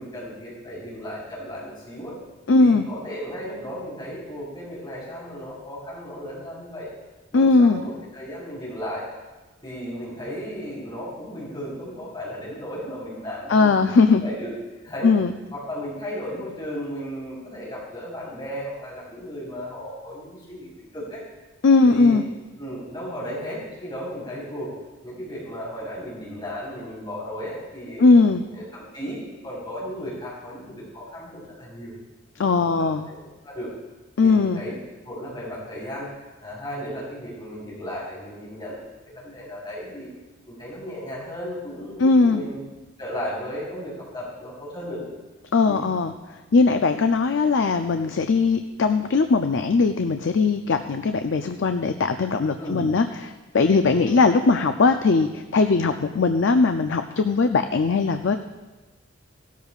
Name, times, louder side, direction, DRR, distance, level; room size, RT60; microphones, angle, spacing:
voice 1, 0.0-2.2 2.6-6.9 7.3-9.1 9.6-13.7 14.1-14.5 14.8-15.1 15.5-21.2 21.8-22.2 22.6-24.7 25.0-28.1 28.5-31.9 32.4-33.2 33.4-33.7 34.2-34.8 35.0-36.1 36.4-38.8 39.1-40.1 40.5-42.6 43.0-45.1 45.7-45.9 52.6-52.9 53.9-54.1, equal, 25° left, -7 dB, 4.0 m, -35 dB
voice 2, 2.5-2.8 7.3-7.8 13.5-14.2 15.0-15.3 21.6-22.2 28.0-28.4 32.4-33.1 34.2-34.6 42.0-42.4 45.5-46.1 46.5-58.4, left 4 dB, 60° left, 7 dB, 0.5 m, -19 dB
16.5 x 13.0 x 2.4 m, 1.2 s
head